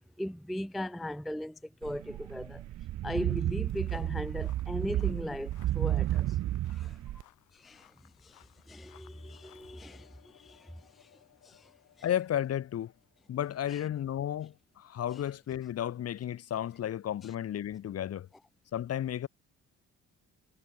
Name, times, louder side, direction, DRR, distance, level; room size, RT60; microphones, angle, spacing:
voice 1, 0.2-2.6 3.0-6.4 6.7-7.2 7.5-7.9 8.2-11.1 11.4-11.7 12.0-12.1 13.7-13.8, equal, ahead, 0.3 m, -38 dB
sound 1, 1.8-7.2, right 14 dB, 65° right, 0.7 m, -32 dB
sound 2, 3.6-9.9, left 14 dB, 85° left, 4.6 m, -62 dB
sound 3, 9.0-14.9, left 11 dB, 70° left, 7.9 m, -64 dB
voice 2, 12.0-12.9 13.3-18.3 18.7-19.3, left 11 dB, 55° left, 0.9 m, -33 dB
cardioid pair, 90°, 30 cm